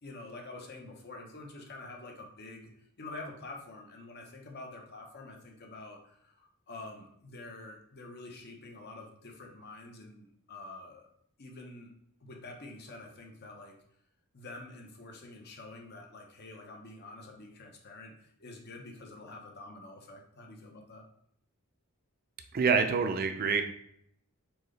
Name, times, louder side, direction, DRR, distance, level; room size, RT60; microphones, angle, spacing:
voice 1, 0.0-11.1 11.4-11.9 12.2-13.8 14.3-21.1, left 2 dB, 50° left, 2 dB, 0.9 m, -47 dB
voice 2, 22.5-23.6, right 5 dB, 45° right, 7 dB, 0.4 m, -26 dB
4.5 x 3.7 x 3.2 m, 0.69 s
head